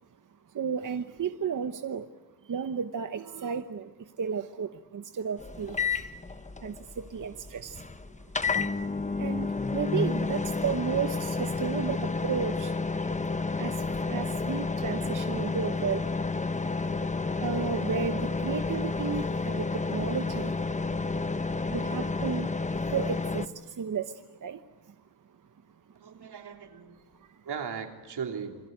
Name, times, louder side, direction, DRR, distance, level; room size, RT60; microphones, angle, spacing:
voice 1, 0.5-2.1 2.4-6.1 6.6-7.8 9.2-13.1 13.6-16.1 17.3-20.5 21.7-24.9 27.3-27.4, right 7 dB, 50° right, 9 dB, 1.0 m, -33 dB
sound 1, 5.4-23.5, left 3 dB, 20° left, 0.9 m, -31 dB
voice 2, 25.9-27.0 27.4-28.6, right 6 dB, 85° right, 3 dB, 3.4 m, -37 dB
28.5 x 22.0 x 9.3 m, 1.2 s
wide cardioid pair, 140°, 39 cm